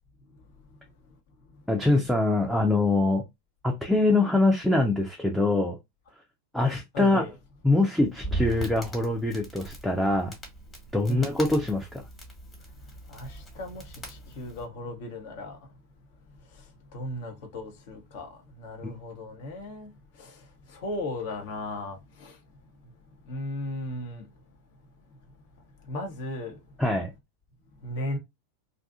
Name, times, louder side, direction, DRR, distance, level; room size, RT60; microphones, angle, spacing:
voice 1, 1.7-3.2 3.6-5.8 6.5-7.2 7.6-10.4 10.9-12.0 18.8-19.0 26.8-27.1, left 2 dB, ahead, 0.5 m, -24 dB
voice 2, 6.9-7.3 11.1-11.3 13.1-15.6 16.5-16.6 16.9-22.4 22.8-22.9 23.2-24.3 25.8-26.6 27.8-28.2, left 1 dB, 50° left, 0.8 m, -36 dB
Crackle, 8.0-14.6, right 1 dB, 15° left, 1.2 m, -39 dB
2.6 x 2.3 x 2.4 m
figure-of-eight pair, 90°, 0 cm